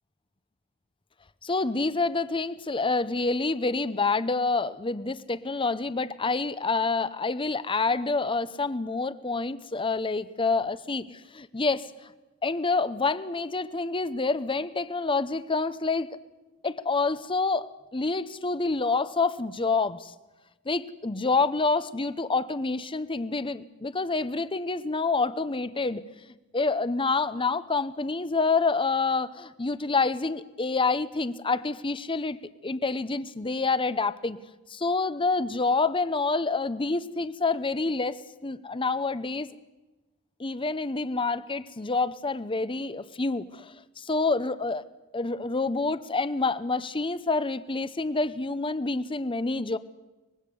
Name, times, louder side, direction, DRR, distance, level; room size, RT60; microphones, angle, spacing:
voice 1, 1.4-12.1 12.4-16.1 16.6-20.1 20.7-26.0 26.5-32.4 32.6-34.4 34.7-38.1 38.4-39.5 40.4-44.9 45.1-49.8, left 3 dB, 25° left, 14 dB, 0.8 m, -27 dB
24.5 x 21.0 x 7.0 m, 1.1 s
head